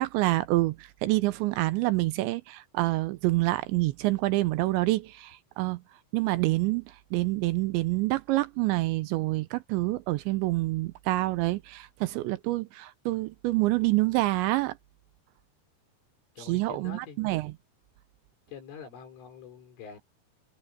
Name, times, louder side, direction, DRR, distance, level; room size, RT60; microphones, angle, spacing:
voice 1, 0.0-5.8 6.1-14.8 16.4-17.5, right 19 dB, 85° right, 2.8 m, -27 dB
voice 2, 16.4-17.2 18.5-20.0, left 7 dB, 80° left, 7.6 m, -45 dB
omnidirectional pair, 5.5 m